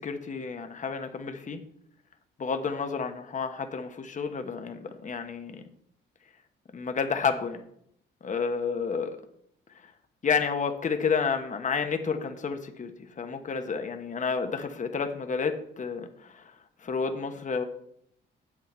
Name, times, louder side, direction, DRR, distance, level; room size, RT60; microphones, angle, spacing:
voice 1, 0.0-1.6 2.4-5.6 6.7-7.6 8.2-9.2 10.2-12.9 13.2-16.4 16.8-17.6, left 5 dB, 40° left, 6 dB, 1.1 m, -30 dB
8.3 x 7.9 x 4.4 m, 0.70 s
cardioid pair, 90°, 20 cm